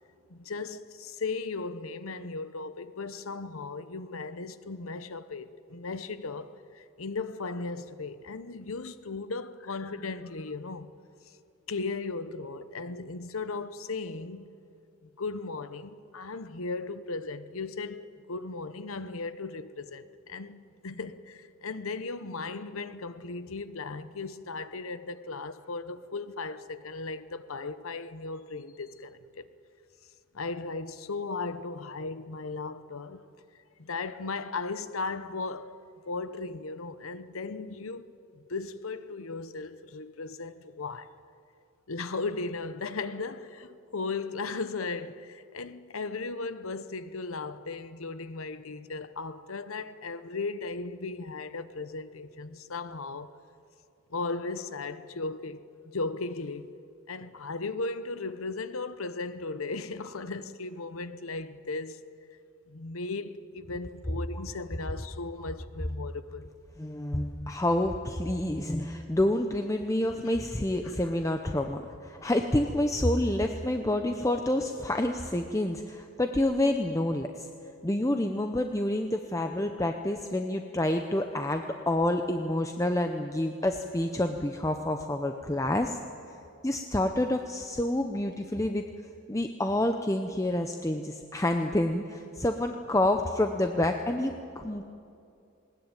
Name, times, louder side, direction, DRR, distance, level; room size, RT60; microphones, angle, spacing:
voice 1, 0.3-10.9 11.3-11.4 11.7-14.5 15.0-29.5 30.3-33.2 33.8-35.8 36.0-41.1 41.9-53.3 54.1-55.7 55.9-56.7 57.1-62.0 62.7-66.5 70.1-70.4 70.8-71.0, left 3 dB, 80° left, 0.9 m, -36 dB
voice 2, 66.8-77.5 77.8-86.0 86.6-88.8 89.3-94.8, left 1 dB, 15° left, 0.7 m, -28 dB
20.0 x 19.0 x 9.1 m
head